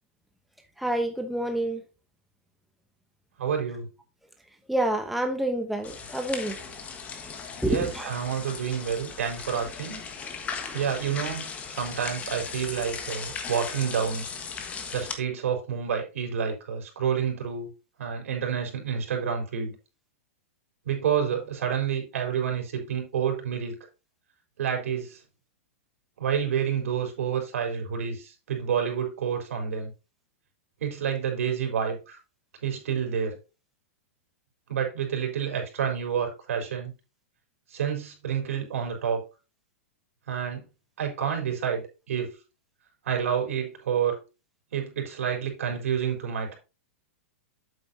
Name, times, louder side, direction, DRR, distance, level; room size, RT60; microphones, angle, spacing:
voice 1, 0.8-1.8 4.7-6.6 7.6-8.1, right 1 dB, ahead, 0.9 m, -28 dB
voice 2, 3.4-3.9 7.6-10.0 10.7-14.3 14.9-17.7 18.0-19.8 20.8-23.8 24.6-25.2 26.2-29.9 30.8-32.2 32.6-33.4 34.7-36.9 37.7-39.2 40.3-40.6 41.0-42.3 43.0-44.2 44.7-46.6, right 8 dB, 80° right, 4.4 m, -29 dB
sound 1, 5.8-15.2, left 5 dB, 20° left, 1.4 m, -37 dB
8.6 x 7.8 x 2.8 m
hypercardioid pair, 150°, 7 cm